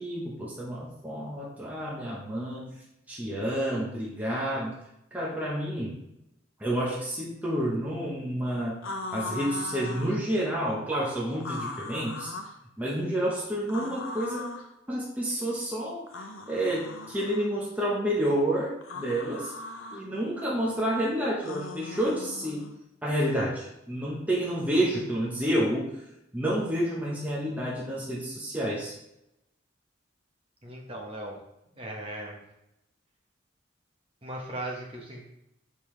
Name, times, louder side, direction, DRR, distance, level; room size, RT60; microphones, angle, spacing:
voice 1, 0.0-2.6 3.1-4.8 5.1-6.0 6.6-8.8 9.1-12.3 12.8-14.5 14.9-19.5 19.9-22.6 23.0-25.9 26.3-28.9, right 1 dB, 10° right, -5 dB, 1.0 m, -29 dB
sound 1, 8.8-10.2 11.4-12.6 13.7-14.7 16.1-17.5 18.8-20.0 21.4-22.7, left 3 dB, 85° left, 0.7 m, -39 dB
voice 2, 30.6-31.4 31.8-32.4 34.2-35.2, right 1 dB, 30° right, -1 dB, 1.1 m, -37 dB
6.7 x 5.5 x 3.2 m, 0.85 s
head